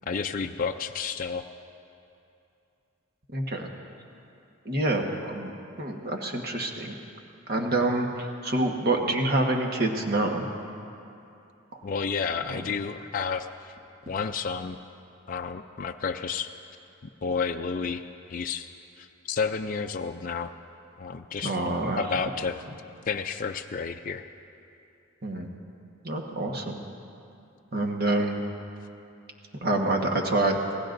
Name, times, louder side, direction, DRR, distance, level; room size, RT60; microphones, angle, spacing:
voice 1, 0.1-1.4 11.8-13.8 14.1-14.8 15.3-16.5 17.2-18.0 18.3-18.7 19.0-20.5 21.0-21.6 22.0-22.6 23.1-24.3, left 5 dB, 40° left, 5 dB, 0.4 m, -31 dB
voice 2, 3.3-3.7 4.6-7.0 7.5-10.4 11.7-11.8 12.5-12.7 21.4-22.0 25.2-25.5 26.0-26.8 27.7-28.4 29.6-30.6, right 2 dB, 45° right, 2 dB, 1.3 m, -27 dB
26.5 x 17.0 x 2.6 m, 2.7 s
head